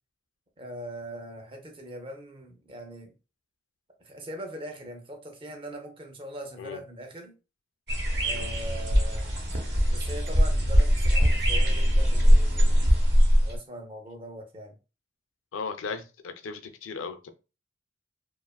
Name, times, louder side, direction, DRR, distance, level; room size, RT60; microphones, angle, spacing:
voice 1, 0.6-3.1 4.0-7.3 8.2-9.3 9.9-12.8 13.4-14.8 15.8-16.0, right 1 dB, 25° right, 0.5 m, -41 dB
sound 1, 7.9-13.6, equal, 60° right, 0.8 m, -21 dB
voice 2, 15.5-17.3, left 5 dB, 90° left, 0.4 m, -36 dB
2.8 x 2.3 x 2.3 m
head